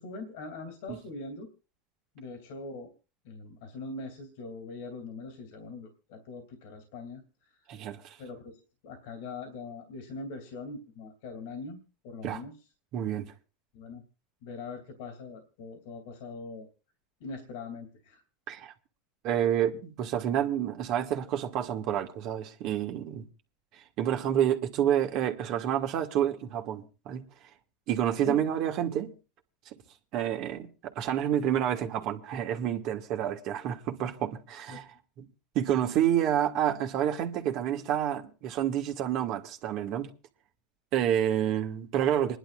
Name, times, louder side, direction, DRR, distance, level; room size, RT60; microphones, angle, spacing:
voice 1, 0.0-1.5 2.1-2.9 3.2-7.5 8.2-12.5 13.7-14.0 14.4-16.7 17.2-18.2 28.2-28.5 34.7-34.8, left 3 dB, 75° left, 2.8 m, -42 dB
voice 2, 7.7-8.2 12.2-12.4 12.9-13.3 18.5-18.7 19.2-23.3 24.0-27.3 27.9-29.1 30.1-34.9 35.2-35.3 35.6-40.1 40.9-42.4, right 10 dB, 55° right, 1.9 m, -29 dB
27.5 x 11.0 x 2.5 m
supercardioid pair, 105°, 0 cm